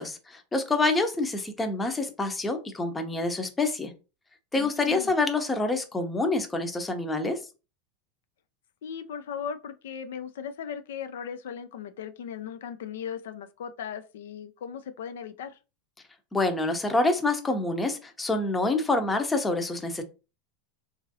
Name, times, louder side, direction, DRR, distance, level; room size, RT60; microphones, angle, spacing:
voice 1, 0.0-3.9 4.5-7.4 16.3-20.0, left 2 dB, 15° left, 0.6 m, -27 dB
voice 2, 4.5-5.1 8.8-15.6, left 8 dB, 80° left, 0.3 m, -37 dB
2.9 x 2.5 x 2.6 m
hypercardioid pair, 110°, 0 cm